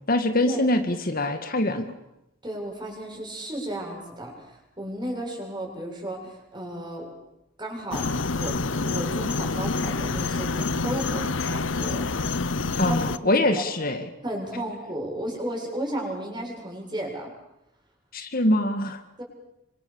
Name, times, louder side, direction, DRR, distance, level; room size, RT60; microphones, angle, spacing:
voice 1, 0.1-1.9 12.8-14.1 18.1-19.0, left 1 dB, 50° left, 7 dB, 2.0 m, -23 dB
voice 2, 2.4-7.1 7.6-12.1 12.8-13.6 14.2-17.3 19.2-19.3, right 1 dB, 25° right, 1 dB, 7.8 m, -34 dB
sound 1, 7.9-13.2, left 3 dB, 75° left, 1.0 m, -27 dB
27.0 x 25.5 x 7.2 m, 0.87 s
head